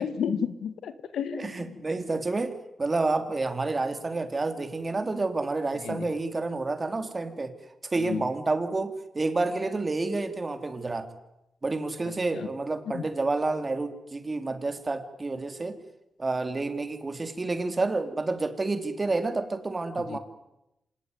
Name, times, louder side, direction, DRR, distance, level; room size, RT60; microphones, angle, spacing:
voice 1, 0.0-1.6 5.9-6.1 8.0-8.3 12.3-12.5 12.9-13.0 20.1-20.2, left 7 dB, 85° left, 12 dB, 1.9 m, -32 dB
voice 2, 1.4-7.6 7.8-11.1 11.6-15.8 16.2-20.2, right 3 dB, 30° right, 8 dB, 3.4 m, -29 dB
26.5 x 19.0 x 9.8 m, 0.90 s
cardioid pair, 80°, 0 cm